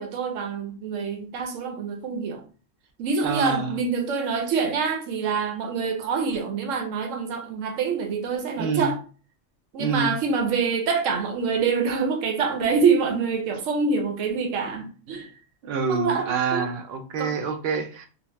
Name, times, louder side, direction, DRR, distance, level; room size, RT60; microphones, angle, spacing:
voice 1, 0.0-2.4 3.0-9.0 9.7-15.3 15.9-16.7 17.2-17.3, right 5 dB, 85° right, 1.0 m, -26 dB
voice 2, 3.2-3.8 8.6-8.9 9.8-10.1 15.6-18.1, right 4 dB, 65° right, 0.7 m, -27 dB
2.8 x 2.0 x 3.0 m
omnidirectional pair, 1.3 m